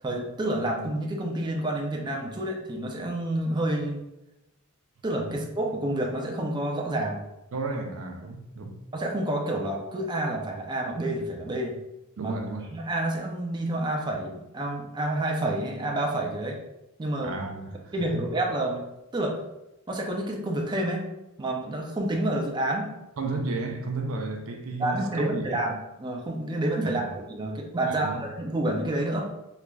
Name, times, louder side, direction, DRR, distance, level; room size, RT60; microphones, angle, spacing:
voice 1, 0.0-4.0 5.0-7.2 8.9-11.8 12.2-12.3 12.7-16.6 17.0-17.4 17.9-18.9 19.1-19.4 19.9-21.1 21.4-22.9 24.8-29.3, right 1 dB, 20° right, 0.4 m, -29 dB
voice 2, 7.5-8.8 12.2-12.7 17.2-18.3 23.2-25.6 26.8-27.1 27.8-28.2, right 3 dB, 80° right, 0.5 m, -33 dB
3.7 x 3.1 x 2.3 m
head